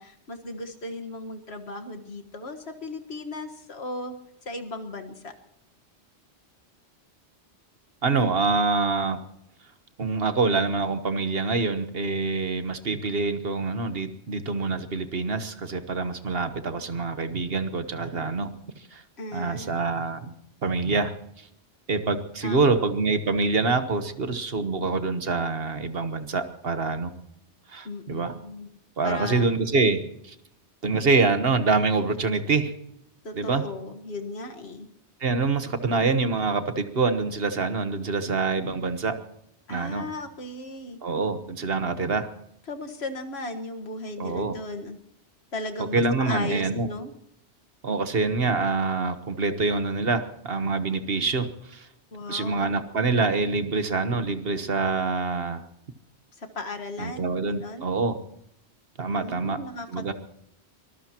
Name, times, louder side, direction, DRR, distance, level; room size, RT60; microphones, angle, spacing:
voice 1, 0.0-4.1 4.4-5.3 19.2-20.1 22.4-22.9 27.8-28.7 29.0-29.6 33.2-34.9 39.7-41.0 42.7-45.0 45.5-47.1 52.1-52.7 56.4-57.9 59.2-60.1, left 2 dB, 65° left, 5 dB, 1.8 m, -36 dB
voice 2, 8.0-9.2 10.0-18.5 18.8-19.0 19.3-20.3 20.6-21.5 21.9-27.1 27.7-28.4 29.0-30.3 30.8-32.7 33.4-33.6 35.2-39.1 39.7-40.1 41.0-42.3 44.2-44.5 45.9-46.9 47.8-51.9 52.3-55.6 57.0-58.2 59.0-59.6 59.9-60.1, right 3 dB, 60° right, 10 dB, 1.4 m, -25 dB
24.0 x 20.0 x 3.0 m, 0.77 s
omnidirectional pair, 1.2 m